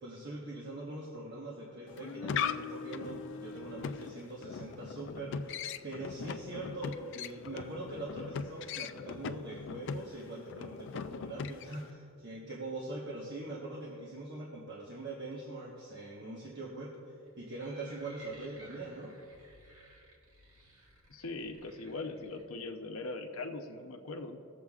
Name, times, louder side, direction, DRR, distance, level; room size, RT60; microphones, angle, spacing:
voice 1, 0.0-5.5 5.8-17.0 17.4-19.1, right 2 dB, 55° right, -4 dB, 1.2 m, -42 dB
sound 1, 1.9-11.9, left 6 dB, 60° left, 0.3 m, -40 dB
sound 2, 17.3-22.4, right 1 dB, 85° right, 1.6 m, -57 dB
voice 2, 21.1-24.4, left 3 dB, 80° left, 4 dB, 0.7 m, -40 dB
19.0 x 7.2 x 2.4 m, 2.6 s
head